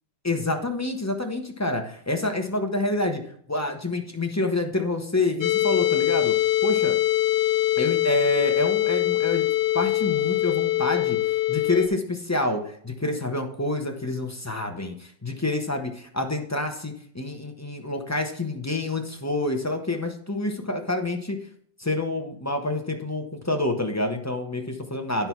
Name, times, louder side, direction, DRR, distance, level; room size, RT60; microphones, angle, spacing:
voice 1, 0.2-3.2 3.5-6.4 6.6-7.0 7.8-21.4 21.8-25.3, left 2 dB, 20° left, 3 dB, 0.4 m, -28 dB
sound 1, 5.4-11.9, left 16 dB, 80° left, 1.3 m, -23 dB
10.5 x 5.8 x 4.6 m, 0.63 s
omnidirectional pair, 2.0 m